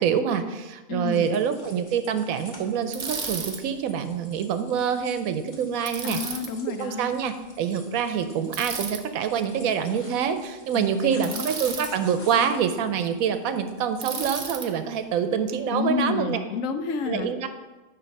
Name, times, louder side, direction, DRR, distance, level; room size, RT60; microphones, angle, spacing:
voice 1, 0.0-6.2 6.8-16.4 17.1-17.5, right 7 dB, 90° right, 9 dB, 1.1 m, -26 dB
voice 2, 0.9-1.4 6.0-7.2 10.7-11.5 15.7-17.3, left 5 dB, 75° left, 8 dB, 1.0 m, -30 dB
sound 1, 1.1-15.2, left 1 dB, 35° left, 1.3 m, -50 dB
Bicycle, 2.9-3.6 5.9-6.5 8.5-9.0 11.2-11.9 14.0-14.7, right 5 dB, 45° right, 0.6 m, -33 dB
9.1 x 3.1 x 5.2 m, 1.2 s
omnidirectional pair, 1.4 m